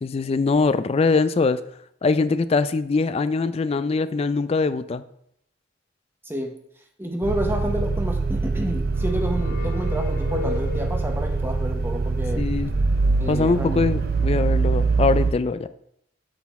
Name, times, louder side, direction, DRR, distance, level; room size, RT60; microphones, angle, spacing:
voice 1, 0.0-1.6 2.0-5.0 12.4-12.7 13.3-15.7, left 4 dB, 35° left, 13 dB, 0.3 m, -22 dB
voice 2, 7.0-12.4 13.2-13.9, equal, 10° right, 4 dB, 0.9 m, -29 dB
sound 1, 7.2-15.3, right 3 dB, 55° right, 0.5 m, -24 dB
sound 2, 8.8-11.3, left 4 dB, 55° left, 1.4 m, -34 dB
8.1 x 4.1 x 4.2 m, 0.71 s
head